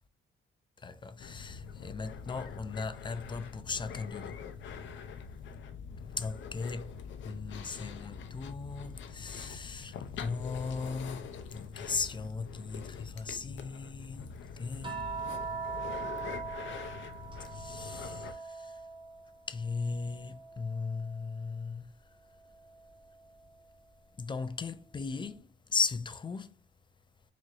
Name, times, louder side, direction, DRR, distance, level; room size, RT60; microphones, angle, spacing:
voice 1, 0.8-4.4 6.2-7.0 7.2-15.1 17.4-18.9 19.5-21.9 24.2-26.6, left 4 dB, 25° left, 0.4 m, -37 dB
sound 1, 1.2-18.3, left 6 dB, 70° left, 0.6 m, -44 dB
sound 2, 14.8-19.3 19.7-21.3 22.8-23.0, right 5 dB, 25° right, 1.0 m, -41 dB
4.5 x 3.0 x 2.6 m
cardioid pair, 90°, 20 cm